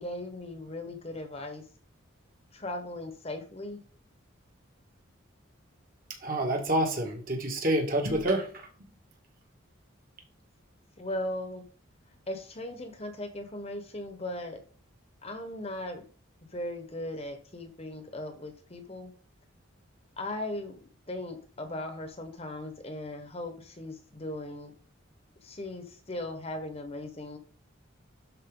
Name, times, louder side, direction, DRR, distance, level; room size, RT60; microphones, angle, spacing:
voice 1, 0.0-1.6 2.5-3.8 11.0-11.6 12.3-14.6 15.2-16.1 16.5-19.1 20.2-24.7 25.4-27.4, left 1 dB, 30° left, 7 dB, 1.1 m, -38 dB
voice 2, 6.2-8.7, right 1 dB, 45° right, 2 dB, 1.8 m, -28 dB
12.0 x 4.5 x 3.8 m, 0.43 s
head